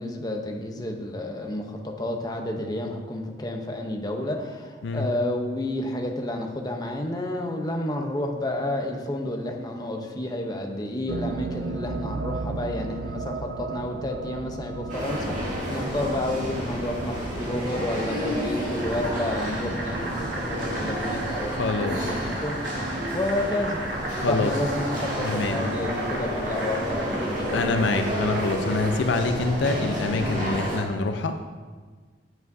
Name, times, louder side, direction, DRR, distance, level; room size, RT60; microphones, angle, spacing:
voice 1, 0.0-22.8 23.1-23.8 24.2-27.8, left 1 dB, 20° left, 2 dB, 0.7 m, -30 dB
sound 1, 11.1-22.4, right 4 dB, 80° right, 0.4 m, -36 dB
sound 2, 14.9-30.8, equal, 45° right, 2.1 m, -31 dB
Boiling, 18.7-29.3, right 1 dB, 60° right, 1.4 m, -35 dB
voice 2, 21.4-22.1 24.2-24.5 25.2-25.6 27.5-31.4, left 3 dB, 80° left, 7 dB, 0.5 m, -26 dB
9.4 x 8.0 x 2.7 m, 1.4 s
head